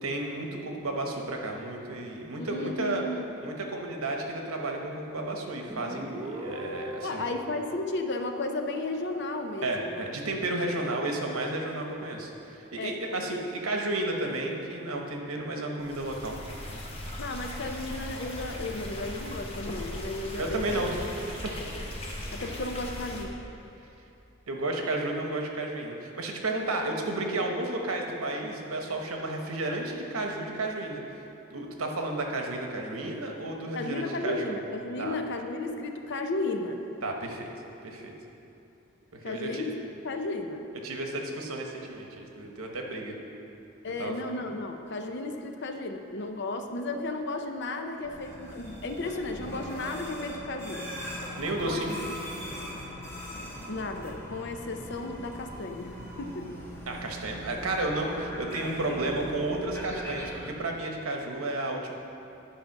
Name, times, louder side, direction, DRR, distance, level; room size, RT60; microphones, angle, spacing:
voice 1, 0.0-3.0 3.4-7.2 9.6-16.4 20.4-21.0 21.4-21.5 24.5-31.0 31.5-34.6 35.0-35.2 37.0-37.5 37.8-38.1 39.1-39.6 40.8-43.2 44.0-44.1 51.3-52.0 56.9-61.9, right 2 dB, 90° right, 2 dB, 1.1 m, -32 dB
voice 2, 2.4-3.5 7.0-10.1 12.8-13.4 17.2-20.8 22.3-23.3 33.7-36.8 39.2-39.7 40.0-40.7 43.8-50.9 51.7-51.8 53.7-55.9 56.2-56.5, left 2 dB, 55° left, 5 dB, 0.7 m, -34 dB
Guitar, 5.7-9.2, right 1 dB, 15° right, 0.9 m, -41 dB
sound 1, 15.8-23.2, left 1 dB, 25° left, 1.0 m, -38 dB
sound 2, 48.0-60.5, equal, 10° left, 1.3 m, -40 dB
10.5 x 5.0 x 5.9 m, 2.8 s
head